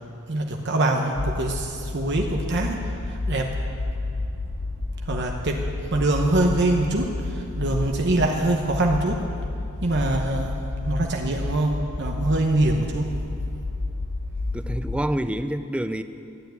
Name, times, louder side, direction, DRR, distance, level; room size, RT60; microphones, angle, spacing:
voice 1, 0.3-2.8 3.1-3.5 5.0-5.6 5.9-9.2 9.8-10.6 10.9-13.1, right 2 dB, 50° right, 2 dB, 1.0 m, -24 dB
sound 1, 1.1-15.1, left 2 dB, 85° left, 0.9 m, -30 dB
voice 2, 14.5-16.0, right 1 dB, 5° right, 10 dB, 0.4 m, -27 dB
13.5 x 9.2 x 9.3 m, 2.6 s
head